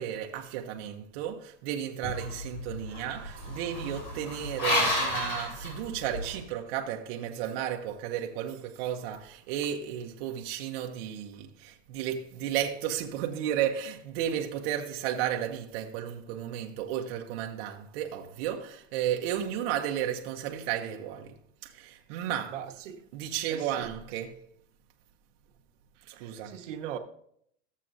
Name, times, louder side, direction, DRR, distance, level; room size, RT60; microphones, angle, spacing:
voice 1, 0.0-21.3 21.6-22.6 23.1-24.4 26.1-26.5, right 10 dB, 55° right, 0.9 m, -33 dB
sound 1, 2.0-6.4, left 1 dB, 45° left, 3.4 m, -32 dB
voice 2, 22.5-23.0 23.5-24.0 26.0-27.0, right 9 dB, 80° right, 1.1 m, -40 dB
13.5 x 7.5 x 2.6 m
supercardioid pair, 155°, 37 cm